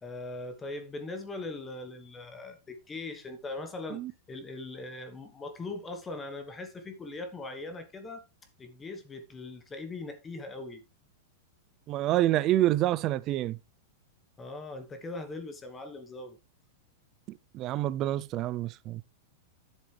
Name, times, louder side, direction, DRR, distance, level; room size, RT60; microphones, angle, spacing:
voice 1, 0.0-4.0 4.3-8.2 8.6-10.8 14.4-16.4, left 2 dB, 10° left, 1.2 m, -40 dB
voice 2, 11.9-13.6 17.5-19.0, right 14 dB, 30° right, 0.4 m, -27 dB
11.0 x 7.1 x 3.3 m
supercardioid pair, 165°, 0 cm